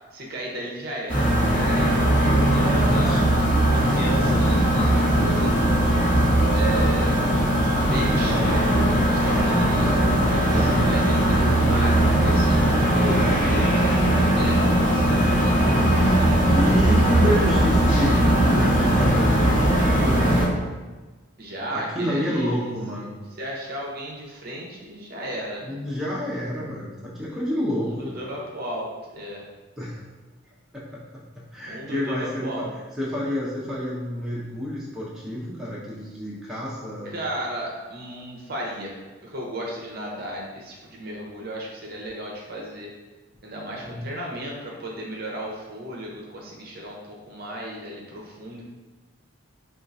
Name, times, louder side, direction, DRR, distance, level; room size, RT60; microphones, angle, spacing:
voice 1, 0.1-5.5 6.5-7.1 7.8-13.9 14.2-16.2 21.4-25.7 27.8-29.5 31.7-32.7 37.0-42.9 43.4-48.6, right 1 dB, 45° right, -2 dB, 0.6 m, -34 dB
sound 1, 1.1-20.5, right 1 dB, 40° left, 1.1 m, -19 dB
voice 2, 9.7-10.8 16.5-20.5 21.7-23.2 25.6-28.1 29.8-30.0 30.7-31.0 31.5-32.6 33.0-37.1 43.8-44.0, equal, ahead, -8 dB, 0.6 m, -29 dB
4.3 x 2.4 x 2.6 m, 1.3 s
head